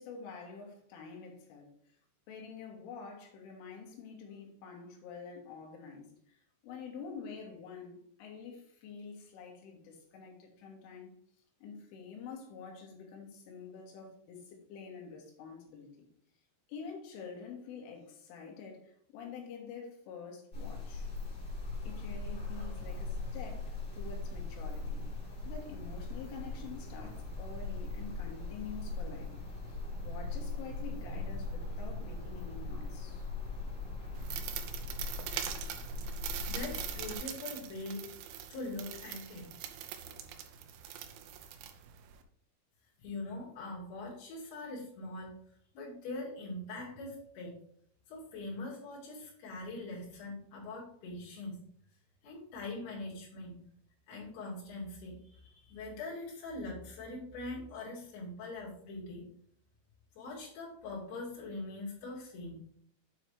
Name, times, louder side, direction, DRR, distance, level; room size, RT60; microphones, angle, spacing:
voice 1, 0.0-1.7 2.3-11.2 11.6-16.1 16.7-21.1 21.8-25.1 25.5-29.3 29.7-33.3, left 5 dB, 75° left, 3.9 m, -47 dB
sound 1, 20.5-37.2, left 3 dB, 25° left, 2.5 m, -40 dB
sound 2, 34.1-42.2, right 10 dB, 85° right, 2.5 m, -42 dB
voice 2, 36.5-38.1 38.5-39.5 43.0-45.3 45.7-47.6 48.1-51.6 52.2-53.6 54.1-59.3 60.2-62.6, left 2 dB, 55° left, 4.2 m, -42 dB
9.0 x 4.1 x 4.6 m
omnidirectional pair, 5.9 m